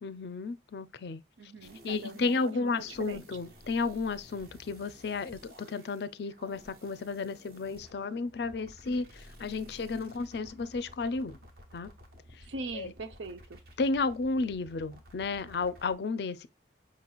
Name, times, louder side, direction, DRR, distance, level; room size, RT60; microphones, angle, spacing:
voice 1, 0.0-1.5 1.8-11.4 11.7-11.9 12.7-12.9 13.8-16.5, left 4 dB, 60° left, 0.4 m, -33 dB
voice 2, 1.4-3.2 12.4-13.6, right 3 dB, 85° right, 0.6 m, -42 dB
sound 1, 1.6-15.9, equal, 55° right, 1.2 m, -54 dB
5.8 x 3.0 x 2.3 m
head